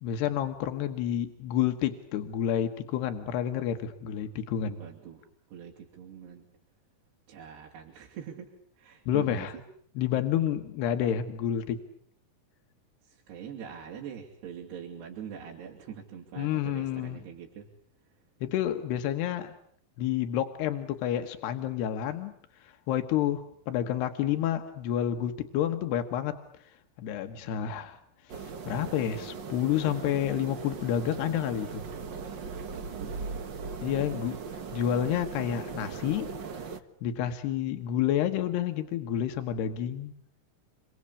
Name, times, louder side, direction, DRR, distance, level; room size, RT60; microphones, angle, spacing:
voice 1, 0.0-4.9 9.1-9.5 10.0-11.8 16.4-17.2 18.4-19.5 20.0-26.7 27.0-28.0 28.2-31.8 33.8-34.4 34.7-36.3 37.0-40.1, left 10 dB, 85° left, 6 dB, 3.5 m, -29 dB
voice 2, 4.8-6.4 7.3-8.5 8.8-9.6 13.0-17.7 32.7-33.4, right 8 dB, 90° right, -2 dB, 5.1 m, -43 dB
sound 1, 28.3-36.8, right 5 dB, 65° right, 1.0 m, -39 dB
28.5 x 24.5 x 8.5 m, 0.64 s
omnidirectional pair, 4.6 m